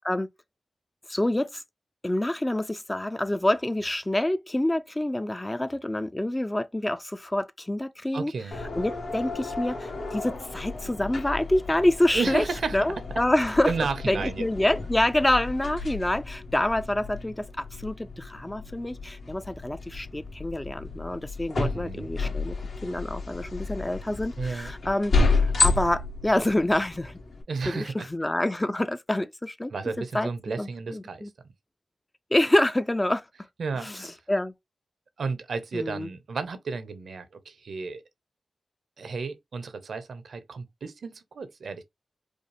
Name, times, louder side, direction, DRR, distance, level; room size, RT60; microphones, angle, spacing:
voice 1, 1.1-1.6 2.0-8.3 8.8-12.4 12.7-13.7 14.0-22.6 22.8-27.2 27.7-29.7 30.1-30.3 30.6-31.3 32.3-33.2 33.8-34.5 35.7-36.1, left 1 dB, 15° left, 0.4 m, -27 dB
voice 2, 8.1-8.6 12.1-12.9 13.7-14.4 21.5-22.1 24.4-24.7 27.5-28.1 29.7-31.3 33.6-34.2 35.2-38.0 39.0-41.8, right 4 dB, 75° right, 0.8 m, -32 dB
sound 1, 8.5-27.4, left 3 dB, 70° left, 1.4 m, -31 dB
5.1 x 2.0 x 3.2 m
cardioid pair, 75°, 0 cm